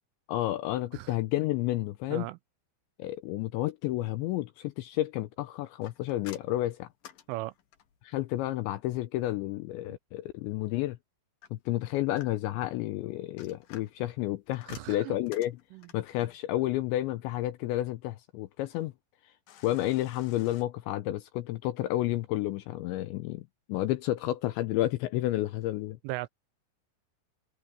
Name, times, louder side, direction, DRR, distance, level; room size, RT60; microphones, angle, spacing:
voice 1, 0.3-2.3 3.0-6.9 8.0-11.0 11.5-15.6 15.9-18.9 19.6-23.4 23.7-26.0, left 15 dB, 85° left, 2.7 m, -31 dB
sound 1, 5.8-8.1 11.4-12.7 13.2-16.2 19.5-20.6, left 10 dB, 60° left, 2.5 m, -52 dB
voice 2, 14.7-15.1 15.7-15.9 26.0-26.3, right 20 dB, 80° right, 3.0 m, -37 dB
open air
omnidirectional pair, 5.9 m